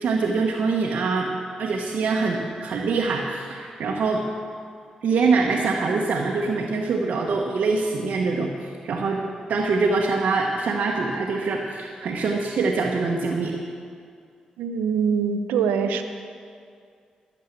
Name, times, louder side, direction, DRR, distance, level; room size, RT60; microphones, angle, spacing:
voice 1, 0.0-1.3 1.6-4.2 5.0-9.2 9.5-13.6, right 4 dB, 70° right, -2 dB, 1.2 m, -24 dB
voice 2, 14.6-16.0, right 6 dB, 85° right, 8 dB, 0.7 m, -23 dB
13.5 x 7.5 x 7.4 m, 2.3 s
supercardioid pair, 40°, 3 cm